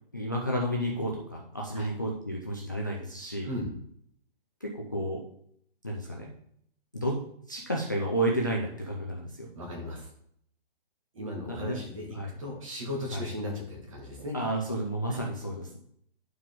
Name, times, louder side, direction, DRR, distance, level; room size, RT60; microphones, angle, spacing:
voice 1, 0.1-3.5 4.6-5.2 5.8-6.3 6.9-7.2 7.5-9.5 11.5-11.8 12.1-12.3 13.1-13.2 14.3-15.8, right 1 dB, 20° left, -2 dB, 0.4 m, -31 dB
voice 2, 9.5-10.1 11.1-14.3 15.1-15.2, left 1 dB, 35° right, 1 dB, 1.9 m, -37 dB
10.5 x 4.6 x 3.6 m, 0.68 s
hypercardioid pair, 175°, 29 cm